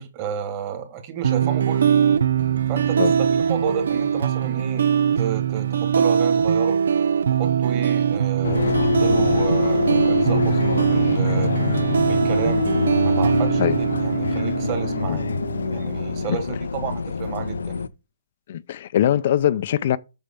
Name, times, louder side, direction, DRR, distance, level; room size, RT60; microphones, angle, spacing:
voice 1, 0.0-1.9 2.7-4.9 5.2-6.8 7.3-11.5 12.1-12.7 13.0-15.3 15.6-17.9, right 7 dB, 30° right, 2.1 m, -31 dB
sound 1, 1.2-16.3, right 8 dB, 70° right, 0.6 m, -22 dB
sound 2, 8.4-17.9, left 5 dB, 85° left, 0.6 m, -24 dB
voice 2, 18.5-20.0, left 11 dB, 45° left, 0.5 m, -21 dB
7.0 x 6.5 x 7.0 m
hypercardioid pair, 160°, 0 cm